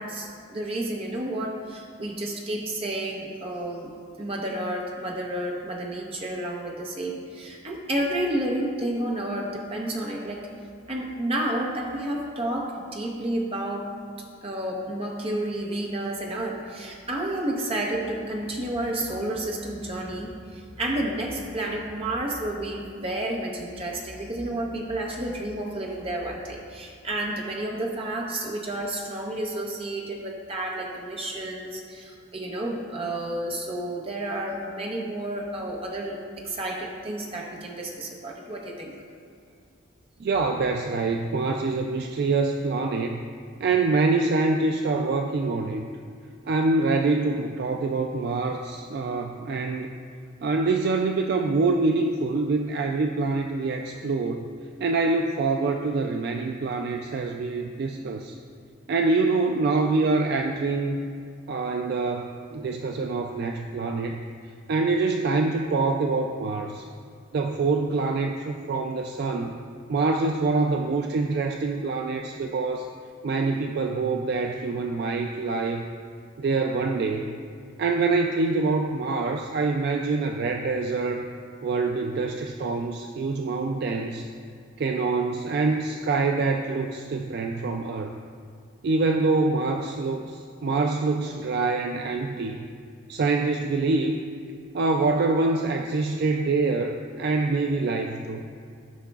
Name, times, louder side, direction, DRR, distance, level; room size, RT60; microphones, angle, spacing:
voice 1, 0.0-10.5 10.9-13.9 14.4-38.9, right 1 dB, 30° right, -1 dB, 0.9 m, -31 dB
voice 2, 40.2-43.2 43.6-45.8 46.4-49.9 50.4-54.4 54.8-58.4 58.9-61.0 61.5-64.2 64.7-66.9 67.3-69.5 69.9-72.9 73.2-75.9 76.4-77.3 77.8-81.3 81.6-84.3 84.8-88.1 88.8-92.6 93.1-94.2 94.7-98.4, right 3 dB, 55° right, 4 dB, 0.3 m, -25 dB
13.5 x 5.6 x 2.4 m, 2.3 s
head